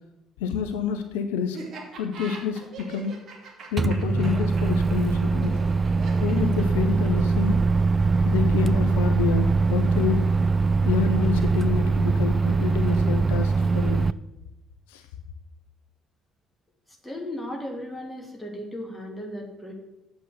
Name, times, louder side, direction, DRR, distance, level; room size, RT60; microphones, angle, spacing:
voice 1, 0.4-1.6 2.0-3.2 3.7-5.6 6.2-7.7 8.2-10.4 10.8-14.1 14.9-15.0, left 7 dB, 70° left, 7 dB, 0.6 m, -28 dB
Laughter, 1.5-7.3, right 4 dB, 50° right, 2.7 m, -42 dB
Microwave oven, 3.8-14.1, right 4 dB, 30° right, 0.4 m, -22 dB
voice 2, 16.9-19.7, left 1 dB, 10° left, 1 dB, 3.0 m, -36 dB
7.9 x 7.7 x 6.7 m, 0.98 s
figure-of-eight pair, 50°, 0 cm